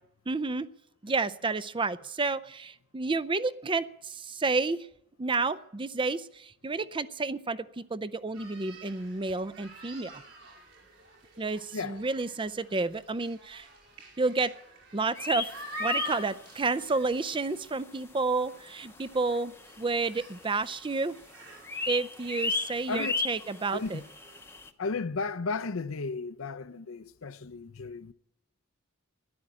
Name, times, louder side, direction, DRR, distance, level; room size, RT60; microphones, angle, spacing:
voice 1, 0.3-0.7 1.0-4.9 5.2-10.2 11.4-13.7 14.2-14.5 14.9-15.5 15.8-19.5 19.8-21.2 21.9-24.0, right 3 dB, 25° right, 0.5 m, -30 dB
sound 1, 8.3-24.6, equal, 65° right, 5.0 m, -47 dB
sound 2, 15.2-16.9 17.2-17.3 17.8-17.9 18.7-18.8 19.0-19.1 19.3-20.4 20.7-21.1 21.3-24.7, left 3 dB, 10° left, 0.8 m, -35 dB
voice 2, 23.7-24.0 24.8-28.1, left 4 dB, 80° left, 0.7 m, -34 dB
13.0 x 11.0 x 8.7 m
head